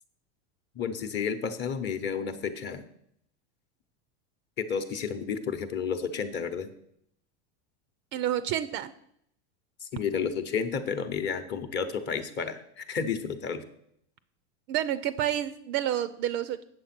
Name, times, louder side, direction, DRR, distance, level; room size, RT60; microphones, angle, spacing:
voice 1, 0.7-2.8 4.6-6.7 9.8-13.6, left 6 dB, 30° left, 9 dB, 0.9 m, -31 dB
voice 2, 8.1-8.9 14.7-16.6, right 11 dB, 35° right, 14 dB, 0.4 m, -29 dB
8.5 x 7.1 x 5.9 m, 0.71 s
supercardioid pair, 150°, 34 cm